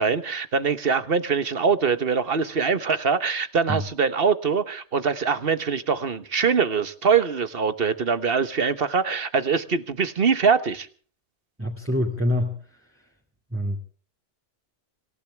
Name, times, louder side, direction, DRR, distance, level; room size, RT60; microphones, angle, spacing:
voice 1, 0.0-10.9, right 5 dB, 60° right, 12 dB, 1.4 m, -23 dB
voice 2, 11.6-13.1 13.5-13.8, left 1 dB, 10° right, 0 dB, 2.3 m, -26 dB
26.0 x 15.5 x 3.5 m, 0.44 s
omnidirectional pair, 1.1 m